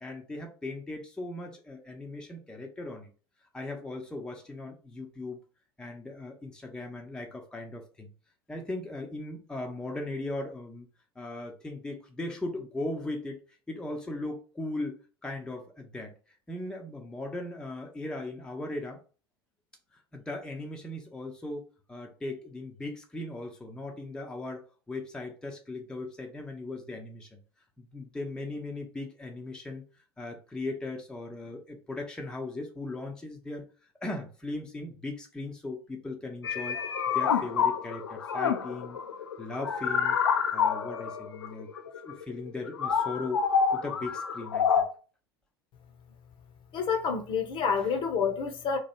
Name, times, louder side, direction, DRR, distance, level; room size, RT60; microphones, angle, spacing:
voice 1, 0.0-3.1 3.5-5.4 5.8-8.1 8.5-10.9 11.2-13.4 13.7-16.1 16.5-19.0 19.9-27.4 27.8-29.8 30.2-33.7 34.0-36.8 37.1-39.0 39.4-40.2 40.5-41.7 42.0-43.4 43.7-44.8, left 2 dB, 5° left, 0.7 m, -38 dB
sound 1, 36.4-44.8, left 6 dB, 75° left, 0.5 m, -28 dB
voice 2, 46.7-48.8, left 6 dB, 40° left, 0.8 m, -28 dB
3.0 x 2.3 x 4.2 m
figure-of-eight pair, 75°, 13 cm